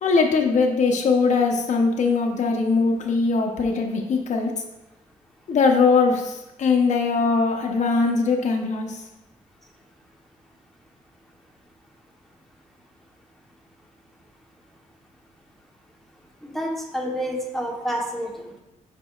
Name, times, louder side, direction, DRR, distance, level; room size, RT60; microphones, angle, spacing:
voice 1, 0.0-4.5 5.5-9.0, left 4 dB, 60° left, 2 dB, 0.9 m, -21 dB
voice 2, 16.4-18.6, equal, ahead, -1 dB, 1.1 m, -29 dB
7.8 x 5.2 x 2.4 m, 0.95 s
cardioid pair, 115°, 14 cm